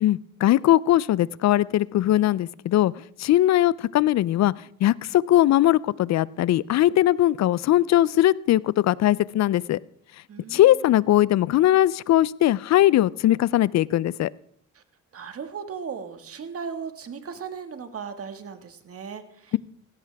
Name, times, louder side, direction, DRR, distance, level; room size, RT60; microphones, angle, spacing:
voice 1, 0.0-2.9 3.2-4.5 4.8-9.8 10.5-14.3, left 13 dB, 60° left, 0.5 m, -20 dB
voice 2, 10.3-10.9 14.7-14.8 15.1-19.6, right 6 dB, 50° right, 1.9 m, -37 dB
17.0 x 16.5 x 3.5 m
cardioid pair, 90°, 30 cm